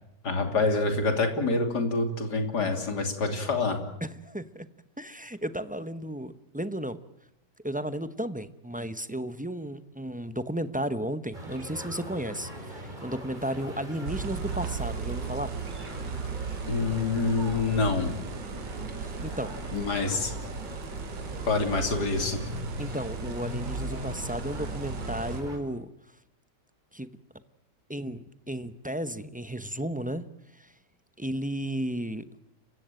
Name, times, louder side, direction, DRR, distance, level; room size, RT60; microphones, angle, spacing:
voice 1, 0.2-3.8 16.6-18.1 19.7-20.3 21.5-22.4, left 3 dB, 65° left, 5 dB, 3.5 m, -26 dB
voice 2, 4.0-4.7 5.0-7.0 7.6-15.5 19.0-19.6 22.8-25.9 26.9-27.1 27.9-30.3 30.5-30.7 31.2-32.4, right 1 dB, 10° right, 11 dB, 0.5 m, -34 dB
sound 1, 11.3-25.6, equal, 25° right, 4.2 m, -40 dB
sound 2, 14.1-25.4, right 6 dB, 80° right, 2.2 m, -37 dB
30.0 x 16.0 x 9.0 m, 0.83 s
omnidirectional pair, 1.9 m